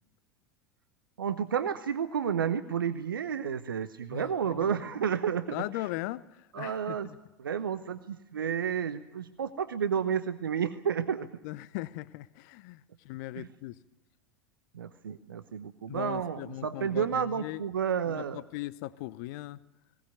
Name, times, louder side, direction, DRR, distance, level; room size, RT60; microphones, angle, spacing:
voice 1, 1.2-5.6 6.5-7.1 7.4-11.3 13.3-13.5 14.7-18.4, right 7 dB, 75° right, 0.9 m, -31 dB
voice 2, 4.1-4.7 5.5-7.2 11.4-13.8 15.9-17.6 18.0-19.6, left 18 dB, 50° left, 0.8 m, -39 dB
19.5 x 19.0 x 9.5 m
figure-of-eight pair, 80°, 12 cm